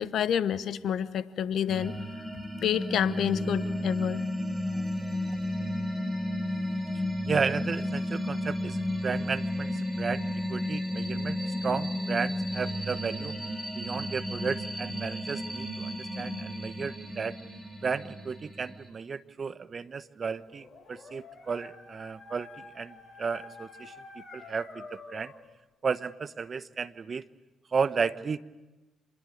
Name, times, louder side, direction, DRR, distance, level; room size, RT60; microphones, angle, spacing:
voice 1, 0.0-2.0 2.6-4.2, left 9 dB, 65° left, 16 dB, 1.0 m, -28 dB
sound 1, 1.7-18.9, right 1 dB, 5° right, 6.6 m, -37 dB
Organ, 2.6-13.2, left 1 dB, 15° left, 1.3 m, -33 dB
voice 2, 7.3-13.3 13.7-17.4 17.8-25.3 25.8-27.3 27.7-28.4, right 5 dB, 45° right, 14 dB, 1.1 m, -33 dB
Dog, 20.4-25.5, left 4 dB, 45° left, 6.8 m, -48 dB
27.5 x 21.5 x 8.7 m, 1.1 s
hypercardioid pair, 50°, 0 cm